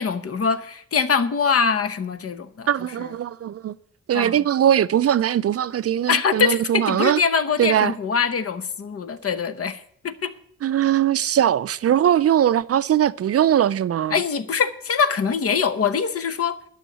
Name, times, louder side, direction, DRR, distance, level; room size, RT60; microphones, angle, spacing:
voice 1, 0.0-2.7 3.0-3.1 4.1-4.4 6.1-10.3 14.1-16.6, left 6 dB, 50° left, 1.0 m, -23 dB
voice 2, 2.7-3.7 4.1-7.2 7.6-7.9 10.6-14.2, right 10 dB, 55° right, 0.4 m, -20 dB
12.0 x 6.4 x 9.0 m
wide cardioid pair, 110°, 29 cm